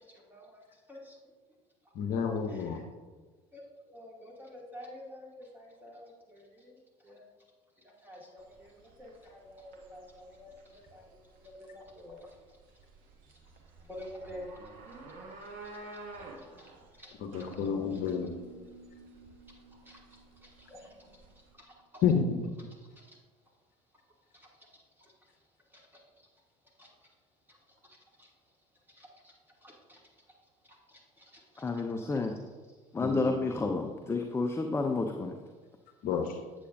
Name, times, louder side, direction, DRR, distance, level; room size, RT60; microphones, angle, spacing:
voice 1, 0.3-0.6 0.9-1.2 2.5-2.7 3.5-3.6 3.9-6.8 7.0-7.3 7.8-11.0 11.4-12.3 13.9-14.5 16.6-16.7 17.0-17.1 17.9-18.2 19.9-20.0 20.6-21.0 23.1-23.2 26.8-26.9 28.2-28.3 29.0-29.1 29.6-30.0 31.2-31.3 31.5-31.6 32.1-32.2, left 1 dB, 10° right, -3 dB, 2.5 m, -49 dB
voice 2, 1.9-2.8 17.3-18.3 22.0-22.5 33.0-33.4 36.0-36.4, left 6 dB, 55° left, 5 dB, 0.8 m, -30 dB
sound 1, 8.4-21.5, right 2 dB, 55° right, 1.3 m, -51 dB
sound 2, 17.3-21.1, right 4 dB, 70° right, 1.0 m, -50 dB
voice 3, 31.6-32.3 32.9-35.4, left 3 dB, 15° left, 4 dB, 0.6 m, -30 dB
8.3 x 7.8 x 2.6 m, 1.3 s
figure-of-eight pair, 65°, 18 cm